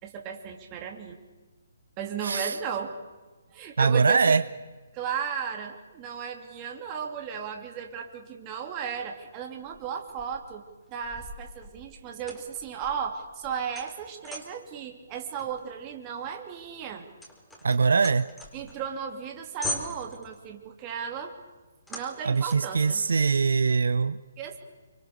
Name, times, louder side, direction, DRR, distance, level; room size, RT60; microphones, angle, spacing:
voice 1, 0.0-1.2 2.0-3.0 3.5-4.4 4.9-17.0 18.5-21.4 21.9-23.0 24.4-24.6, right 7 dB, 25° right, 2 dB, 2.9 m, -35 dB
voice 2, 2.2-2.6 3.8-4.4 17.6-18.3 22.3-24.2, right 5 dB, 65° right, 14 dB, 0.8 m, -22 dB
sound 1, 9.6-10.5 11.0-14.7 15.4-18.9 19.3-19.4 19.6-20.4 21.9-22.8, left 1 dB, 5° left, 4.2 m, -40 dB
28.5 x 25.5 x 6.7 m, 1.3 s
figure-of-eight pair, 135°, 0 cm